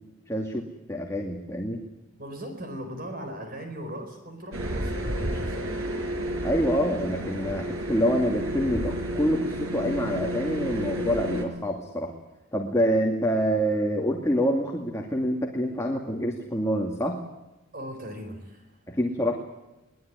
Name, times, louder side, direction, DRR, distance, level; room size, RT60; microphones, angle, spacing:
voice 1, 0.3-1.8 6.4-12.1 12.5-17.2 18.9-19.3, equal, 15° left, 1 dB, 2.5 m, -26 dB
voice 2, 2.2-5.8 17.7-18.8, equal, 45° right, 5 dB, 4.6 m, -39 dB
sound 1, 4.5-11.5, right 1 dB, 90° right, 5.5 m, -31 dB
23.0 x 20.0 x 9.7 m, 1.0 s
head